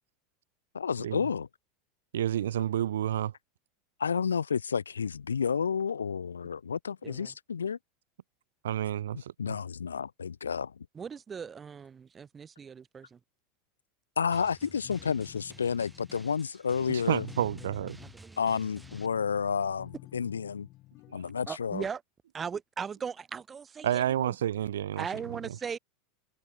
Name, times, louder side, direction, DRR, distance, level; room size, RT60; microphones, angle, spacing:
voice 1, 0.7-1.5 4.0-7.8 9.4-10.7 14.2-17.2 18.4-20.7 21.1-21.8, left 6 dB, 85° left, 0.5 m, -30 dB
voice 2, 2.1-3.3 8.6-9.6 16.9-18.0 21.1-21.2 23.8-25.1, right 11 dB, 75° right, 0.4 m, -30 dB
voice 3, 10.9-13.2 18.0-18.6 21.5-22.0 22.3-24.3 25.0-25.8, right 6 dB, 25° right, 1.5 m, -39 dB
Drum, 14.3-19.1, right 2 dB, 10° right, 6.2 m, -53 dB
sound 1, 14.6-16.4 17.1-18.2 18.6-21.5, left 18 dB, 50° left, 2.4 m, -50 dB
hypercardioid pair, 85°, 0 cm